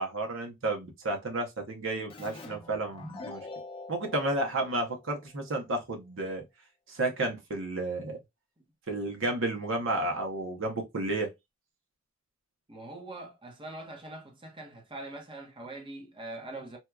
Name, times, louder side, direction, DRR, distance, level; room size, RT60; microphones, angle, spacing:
voice 1, 0.0-3.4 3.9-6.4 6.9-8.2 8.9-11.3, right 2 dB, 65° right, 0.8 m, -32 dB
Keyboard (musical), 2.1-5.5, left 2 dB, 25° left, 0.8 m, -45 dB
voice 2, 12.7-16.8, right 2 dB, 25° right, 1.0 m, -43 dB
4.4 x 2.3 x 2.3 m
head